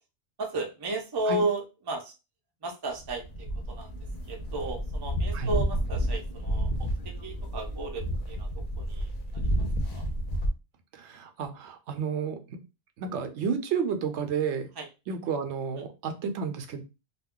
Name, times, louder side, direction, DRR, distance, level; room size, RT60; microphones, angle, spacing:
voice 1, 0.4-2.1 2.6-3.9 4.3-9.5 9.8-10.1 14.8-14.9 15.7-15.8, right 2 dB, 30° right, 3 dB, 0.4 m, -34 dB
sound 1, 3.0-10.5, equal, 55° left, 0.7 m, -31 dB
voice 2, 10.9-12.6 13.0-14.7 15.1-16.8, right 6 dB, 75° right, 7 dB, 0.9 m, -31 dB
2.4 x 2.2 x 3.6 m, 0.27 s
omnidirectional pair, 1.2 m